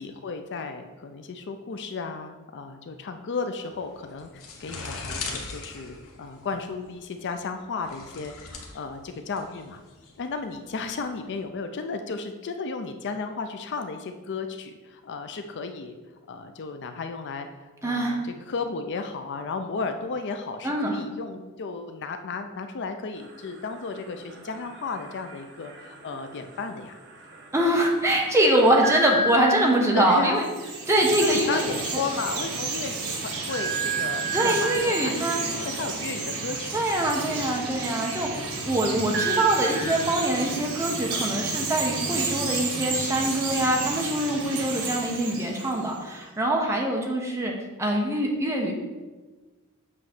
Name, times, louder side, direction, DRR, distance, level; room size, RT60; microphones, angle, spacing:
voice 1, 0.0-9.8 10.2-16.0 16.3-17.5 17.8-27.0 29.9-30.8 31.2-36.9 46.6-46.8, left 4 dB, 50° left, 7 dB, 0.5 m, -34 dB
sound 1, 3.7-11.4, left 4 dB, 70° left, 1.1 m, -40 dB
voice 2, 17.8-18.2 20.6-21.0 27.5-30.4 30.9-31.6 34.3-35.4 36.7-38.3 38.6-47.5 47.8-48.7, right 1 dB, 15° right, 0 dB, 1.0 m, -24 dB
sound 2, 23.2-27.6 28.8-30.0 31.2-31.3 31.6-31.8 32.2-32.3 33.5-35.1 37.2-41.4, right 2 dB, 55° right, 1.0 m, -33 dB
Chirp tweet, 30.4-46.0, right 4 dB, 75° right, 1.3 m, -32 dB
7.7 x 3.1 x 6.0 m, 1.3 s
head